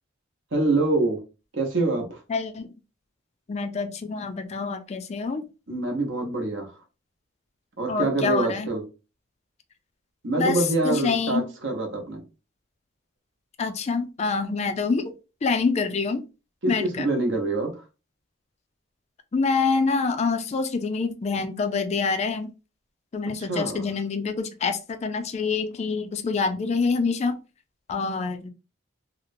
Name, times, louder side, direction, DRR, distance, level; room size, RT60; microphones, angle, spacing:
voice 1, 0.5-1.2 1.5-2.2 5.7-6.7 7.8-8.8 10.2-12.2 16.6-17.8 23.4-23.9, right 2 dB, 60° right, 0.8 m, -25 dB
voice 2, 2.3-2.7 3.5-5.5 7.9-8.7 10.4-11.5 13.6-15.1 15.4-16.2 16.7-17.1 19.3-22.5 23.1-27.4 27.9-28.5, left 4 dB, 35° left, 0.3 m, -26 dB
2.8 x 2.0 x 2.5 m
head